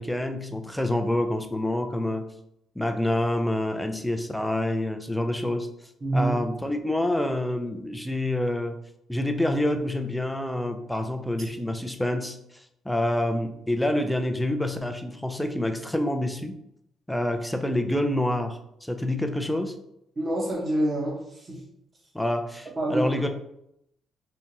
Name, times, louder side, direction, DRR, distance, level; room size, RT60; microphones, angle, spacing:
voice 1, 0.0-2.3 2.8-5.7 6.1-8.8 9.1-16.6 17.1-19.8 22.1-23.3, left 1 dB, 5° left, 6 dB, 0.4 m, -27 dB
voice 2, 6.0-6.4 20.1-21.6 22.8-23.3, right 1 dB, 35° right, -3 dB, 1.3 m, -27 dB
3.4 x 2.8 x 2.9 m, 0.78 s
cardioid pair, 90°, 0 cm